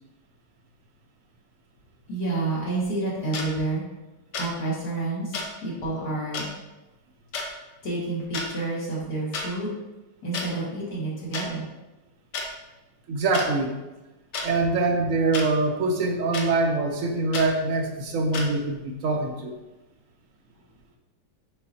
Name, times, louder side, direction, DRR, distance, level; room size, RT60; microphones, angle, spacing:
voice 1, 2.1-3.8 4.4-6.5 7.8-9.7 10.2-11.7, right 2 dB, 60° left, -6 dB, 2.3 m, -29 dB
sound 1, 3.3-3.5 4.3-4.5 5.3-5.5 6.3-6.5 7.3-7.5 8.2-8.5 9.3-9.5 10.3-10.5 11.3-11.5 12.3-12.5 13.3-13.5 14.3-14.5 15.3-15.5 16.3-16.5 17.3-17.5 18.3-18.5, left 3 dB, 75° left, 1.5 m, -30 dB
voice 2, 13.1-13.7 14.4-19.5, right 3 dB, 60° right, 3 dB, 0.9 m, -24 dB
6.8 x 5.0 x 2.7 m, 1.1 s
omnidirectional pair, 1.9 m